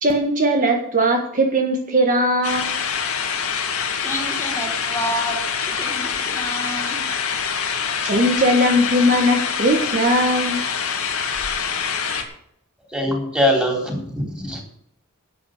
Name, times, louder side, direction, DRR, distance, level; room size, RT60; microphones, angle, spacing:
voice 1, 0.0-2.7 8.0-10.6, equal, 40° right, 3 dB, 1.5 m, -19 dB
sound 1, 2.4-12.2, left 6 dB, 85° left, 2.2 m, -25 dB
voice 2, 4.0-7.0, equal, 10° left, 0 dB, 2.8 m, -29 dB
voice 3, 12.9-14.6, equal, 5° right, 0 dB, 3.9 m, -22 dB
12.0 x 8.5 x 6.6 m, 0.71 s
head